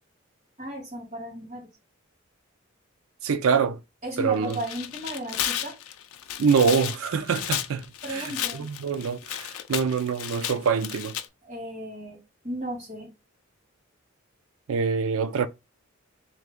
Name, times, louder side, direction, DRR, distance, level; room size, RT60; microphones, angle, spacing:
voice 1, 0.6-1.7 4.0-5.8 8.0-8.7 11.4-12.2 12.4-13.1, right 1 dB, 35° right, 2.4 m, -35 dB
voice 2, 3.2-3.8 4.2-4.6 6.4-11.1 14.7-15.5, right 6 dB, 75° right, 0.4 m, -25 dB
Tearing, 4.4-11.2, left 11 dB, 85° left, 0.4 m, -33 dB
3.3 x 3.1 x 3.6 m
head